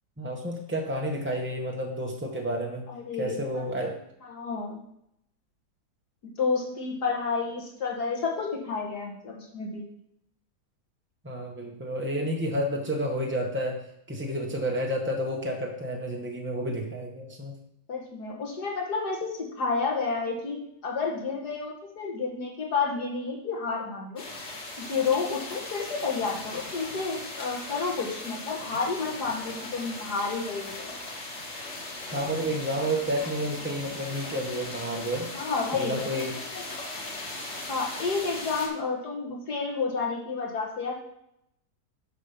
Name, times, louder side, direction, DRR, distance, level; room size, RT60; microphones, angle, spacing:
voice 1, 0.2-2.9 3.2-3.9 11.2-17.6 32.1-35.3 35.7-36.4, equal, 15° right, 0 dB, 0.4 m, -30 dB
voice 2, 2.9-3.6 4.2-4.8 6.2-9.8 17.9-24.2 24.8-30.9 35.3-36.3 36.5-36.6 37.7-40.9, left 4 dB, 75° left, -1 dB, 2.2 m, -30 dB
sound 1, 24.2-38.7, left 2 dB, 45° left, 1.8 m, -38 dB
8.0 x 5.7 x 5.2 m, 0.78 s
omnidirectional pair, 1.7 m